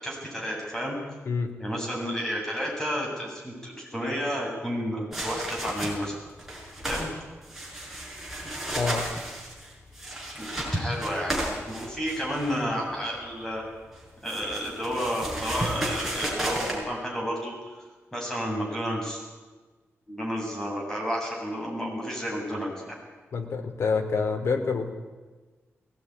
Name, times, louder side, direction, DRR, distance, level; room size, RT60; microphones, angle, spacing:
voice 1, 0.0-1.0 1.6-6.1 6.9-7.1 10.4-13.6 14.2-17.5 18.1-19.2 20.1-22.9, equal, 10° left, -2 dB, 7.8 m, -31 dB
sound 1, 5.1-6.1 6.4-7.1 7.4-12.6 13.9-16.8, right 1 dB, 5° right, 6.0 m, -33 dB
voice 2, 23.3-24.9, left 5 dB, 70° left, 4 dB, 3.3 m, -27 dB
21.5 x 17.5 x 9.8 m, 1.3 s
wide cardioid pair, 170°, 5 cm